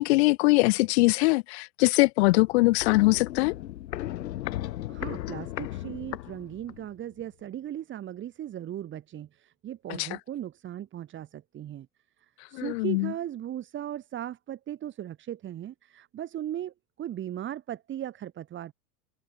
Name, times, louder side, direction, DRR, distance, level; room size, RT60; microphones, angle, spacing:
voice 1, 0.0-3.5 10.0-10.1 12.5-13.1, left 22 dB, 40° left, 0.5 m, -22 dB
Walk footsteps, 2.3-6.9 7.2-7.3, left 14 dB, 80° left, 6.3 m, -36 dB
voice 2, 4.9-11.9 12.5-18.7, right 11 dB, 25° right, 4.9 m, -37 dB
supercardioid pair, 160°, 50 cm